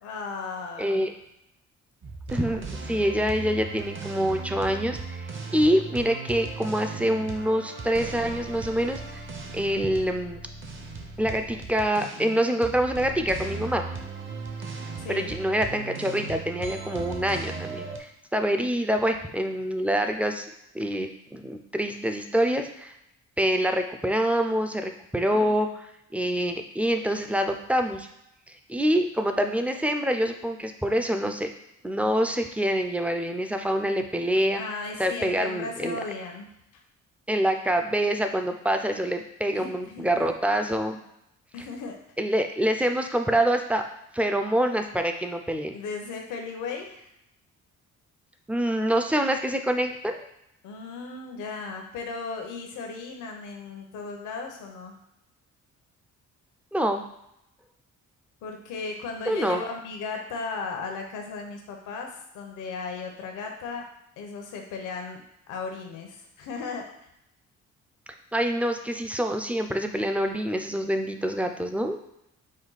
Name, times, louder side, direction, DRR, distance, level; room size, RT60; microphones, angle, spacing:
voice 1, 0.0-1.1 15.0-15.3 25.3-25.5 34.5-36.8 39.6-40.3 41.5-42.0 45.7-47.1 50.6-55.0 58.4-63.9 64.2-65.2 65.5-66.9, left 4 dB, 85° left, 2 dB, 0.9 m, -36 dB
voice 2, 0.8-1.1 2.3-9.2 9.5-10.4 11.2-13.8 15.1-20.5 20.7-22.9 23.4-25.7 26.1-28.1 28.5-31.5 31.8-34.6 35.0-36.0 37.3-41.0 42.2-43.8 44.1-45.8 48.5-50.3 56.7-57.0 59.3-59.6 68.3-72.0, equal, 5° right, 5 dB, 0.4 m, -26 dB
sound 1, 2.0-18.0, right 4 dB, 40° right, 0.8 m, -37 dB
5.1 x 2.3 x 4.0 m, 0.81 s
cardioid pair, 90°, 30 cm